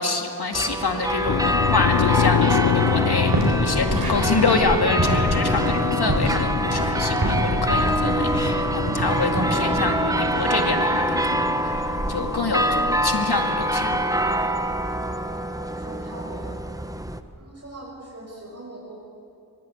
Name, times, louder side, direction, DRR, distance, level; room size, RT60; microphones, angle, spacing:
voice 1, 0.0-14.0, left 3 dB, 80° left, 3 dB, 2.4 m, -26 dB
sound 1, 0.5-17.2, right 1 dB, 10° right, 1.1 m, -25 dB
sound 2, 1.3-14.5, left 8 dB, 55° left, 0.6 m, -27 dB
sound 3, 2.8-3.0 3.3-8.6 8.9-9.6, right 2 dB, 70° right, 5.1 m, -26 dB
voice 2, 15.4-16.6 17.3-18.9, right 1 dB, 40° right, -4 dB, 6.6 m, -41 dB
22.5 x 21.5 x 8.8 m, 2.5 s
wide cardioid pair, 45°, 38 cm